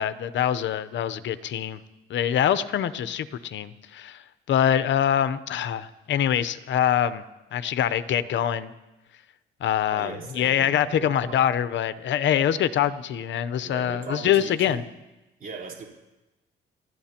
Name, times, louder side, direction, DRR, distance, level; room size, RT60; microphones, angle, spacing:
voice 1, 0.0-1.8 2.1-4.2 4.5-7.2 7.5-8.7 9.6-14.8, left 10 dB, 70° left, 14 dB, 0.8 m, -24 dB
voice 2, 9.9-11.4 13.6-14.9 15.4-15.8, right 4 dB, 45° right, -1 dB, 3.7 m, -38 dB
28.0 x 12.5 x 2.9 m, 1.0 s
cardioid pair, 90°, 20 cm